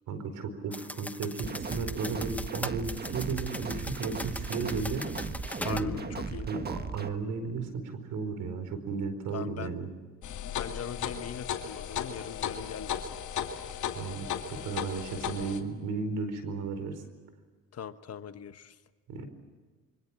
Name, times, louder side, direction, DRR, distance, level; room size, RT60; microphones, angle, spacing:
voice 1, 0.1-5.1 5.6-5.9 6.5-9.9 13.9-17.0 19.1-19.3, right 4 dB, 85° right, 9 dB, 4.6 m, -34 dB
sound 1, 0.7-5.9, left 1 dB, 5° left, 0.8 m, -41 dB
sound 2, 1.4-7.1, right 4 dB, 35° right, 1.6 m, -37 dB
voice 2, 5.6-6.5 9.3-9.9 10.6-13.2 17.7-18.8, left 8 dB, 55° left, 10 dB, 1.4 m, -41 dB
sound 3, 10.2-15.6, left 8 dB, 75° left, 2.5 m, -35 dB
26.5 x 24.0 x 7.4 m, 1.4 s
cardioid pair, 90°, 30 cm